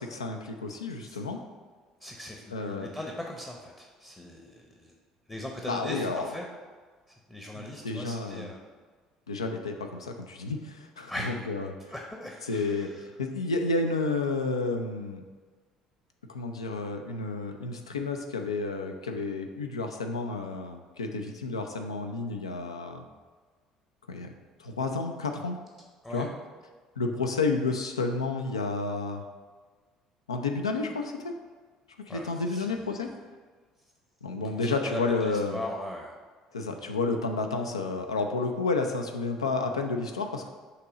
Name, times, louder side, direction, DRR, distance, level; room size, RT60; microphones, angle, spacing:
voice 1, 0.0-1.4 2.5-2.9 5.6-6.3 7.5-8.5 9.3-11.9 12.5-15.2 16.3-23.0 24.1-24.3 24.6-25.6 26.1-26.3 27.0-29.2 30.3-31.3 32.1-33.1 34.2-35.6 36.5-40.5, left 3 dB, 85° left, 5 dB, 0.5 m, -31 dB
voice 2, 2.0-4.9 5.3-6.5 7.1-8.6 11.1-11.3 11.9-13.0 26.0-26.3 32.1-32.8 34.4-36.2, left 1 dB, 15° left, 0 dB, 0.8 m, -39 dB
6.6 x 2.9 x 5.0 m, 1.5 s
figure-of-eight pair, 55°, 3 cm